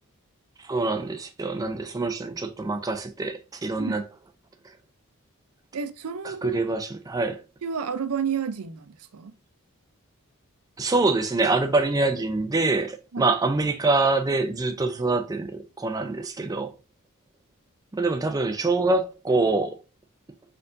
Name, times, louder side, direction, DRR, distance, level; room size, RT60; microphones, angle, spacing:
voice 1, 0.6-4.0 6.2-7.4 10.8-16.7 17.9-19.8, right 3 dB, 15° right, 0.4 m, -25 dB
voice 2, 5.7-6.6 7.6-9.3 13.1-13.3, right 6 dB, 85° right, 0.5 m, -31 dB
4.4 x 3.9 x 2.5 m
head